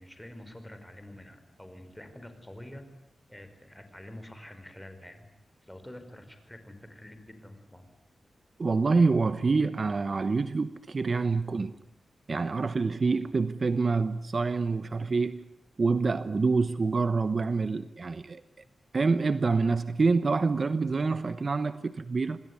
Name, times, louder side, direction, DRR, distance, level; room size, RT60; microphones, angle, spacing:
voice 1, 0.0-2.8 3.3-5.2 5.6-7.8, left 1 dB, 5° left, 5.1 m, -47 dB
voice 2, 8.6-11.7 12.3-15.4 15.8-18.4 18.9-22.4, right 4 dB, 45° right, 1.0 m, -26 dB
27.0 x 20.5 x 9.8 m
wide cardioid pair, 100°, 0 cm